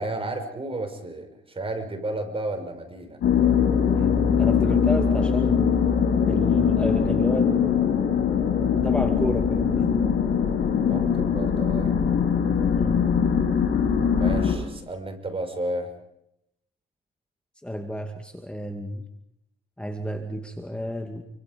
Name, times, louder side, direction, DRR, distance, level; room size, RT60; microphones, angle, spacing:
voice 1, 0.0-3.2 10.8-12.0 14.1-15.9, right 2 dB, 25° right, 6 dB, 5.8 m, -32 dB
sound 1, 3.2-14.5, left 7 dB, 75° left, 5.6 m, -22 dB
voice 2, 3.9-5.7 6.3-7.7 8.8-9.9 12.7-13.1 17.6-19.0 19.8-21.2, equal, 5° left, 5 dB, 2.4 m, -31 dB
28.0 x 25.0 x 5.4 m, 0.79 s
cardioid pair, 90°, 20 cm